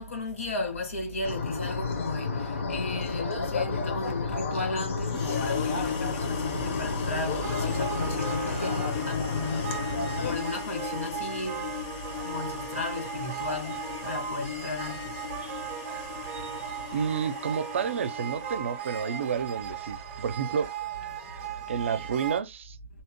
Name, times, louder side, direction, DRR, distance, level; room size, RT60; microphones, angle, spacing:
voice 1, 0.0-2.3 2.7-9.7 10.2-11.7 12.2-15.2, left 2 dB, 80° left, 1.7 m, -34 dB
sound 1, 1.2-10.4, left 4 dB, 60° left, 0.9 m, -31 dB
sound 2, 5.1-19.0, left 8 dB, 30° left, 0.6 m, -38 dB
sound 3, 7.4-22.4, right 9 dB, 15° right, 0.6 m, -37 dB
voice 2, 16.9-20.7 21.7-22.8, right 7 dB, 60° right, 0.5 m, -30 dB
2.7 x 2.1 x 2.9 m
hypercardioid pair, 165°, 7 cm